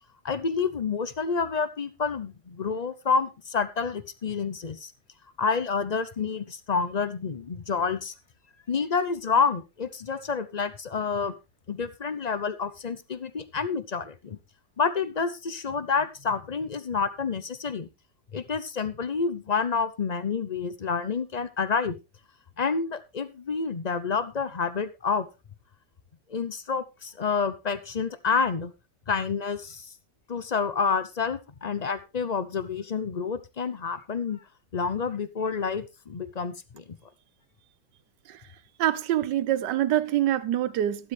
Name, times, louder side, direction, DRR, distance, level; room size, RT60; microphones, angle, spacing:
voice 1, 0.2-4.9 5.4-8.1 8.7-11.3 11.7-14.4 14.8-17.9 18.3-21.9 22.6-25.3 26.3-28.7 29.1-29.9 30.3-34.4 34.7-37.0, left 5 dB, 45° left, 0.5 m, -28 dB
voice 2, 38.8-41.1, right 12 dB, 85° right, 1.4 m, -25 dB
13.0 x 12.0 x 3.3 m
omnidirectional pair, 1.8 m